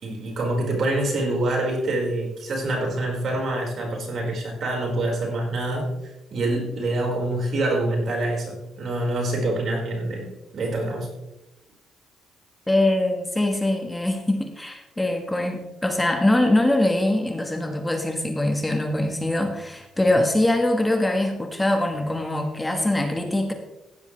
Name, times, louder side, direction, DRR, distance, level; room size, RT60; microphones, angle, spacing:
voice 1, 0.0-5.9 6.3-11.1, right 1 dB, 55° right, -1 dB, 5.0 m, -26 dB
voice 2, 12.7-23.5, left 1 dB, 10° left, 4 dB, 1.6 m, -23 dB
16.0 x 10.0 x 3.4 m, 0.95 s
cardioid pair, 90°, 0 cm